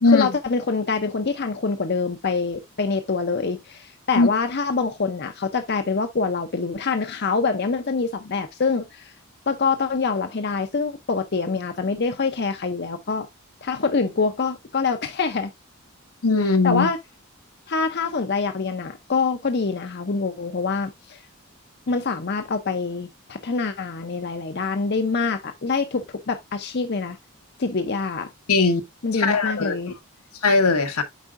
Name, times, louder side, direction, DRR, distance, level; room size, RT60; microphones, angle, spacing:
voice 1, 0.1-9.1 9.5-13.3 13.6-15.5 16.6-17.0 17.7-21.2 21.9-27.2 27.6-28.3 29.0-29.9, left 4 dB, 50° left, 0.6 m, -25 dB
voice 2, 16.2-16.9 28.5-28.8 29.1-29.7 30.4-31.0, left 3 dB, 80° left, 1.2 m, -19 dB
8.2 x 4.8 x 2.5 m
head